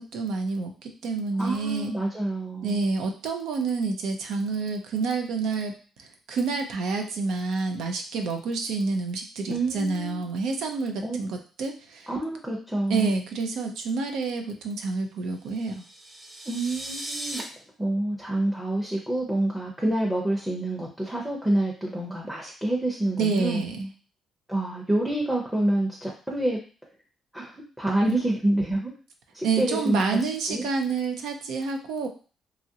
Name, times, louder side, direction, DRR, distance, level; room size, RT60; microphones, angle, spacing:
voice 1, 0.0-1.9 2.6-5.7 6.0-12.1 12.9-15.8 23.2-23.9 28.1-28.2 29.4-32.1, right 4 dB, 80° right, 4 dB, 0.5 m, -28 dB
voice 2, 1.4-2.8 9.5-10.2 11.0-11.2 12.1-13.1 16.5-17.4 17.8-23.6 24.5-26.6 27.3-27.5 27.8-28.9 29.3-30.2 30.5-30.7, right 1 dB, 5° right, -2 dB, 0.7 m, -27 dB
sound 1, 15.5-17.4, right 1 dB, 25° right, 0.9 m, -37 dB
3.0 x 2.4 x 2.7 m, 0.38 s
cardioid pair, 90°, 0 cm